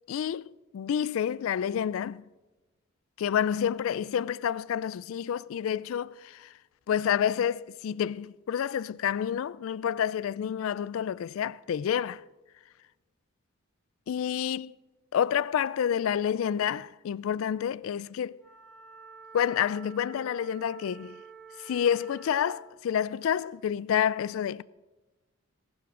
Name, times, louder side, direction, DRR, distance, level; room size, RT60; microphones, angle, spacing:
voice 1, 0.1-2.2 3.2-6.5 6.9-12.2 14.1-14.7 15.1-18.4 19.3-21.2 21.6-24.6, left 8 dB, 70° left, 0.3 m, -29 dB
Wind instrument woodwind instrument, 18.4-22.7, right 6 dB, 5° right, 3.2 m, -49 dB
18.0 x 11.5 x 3.7 m
head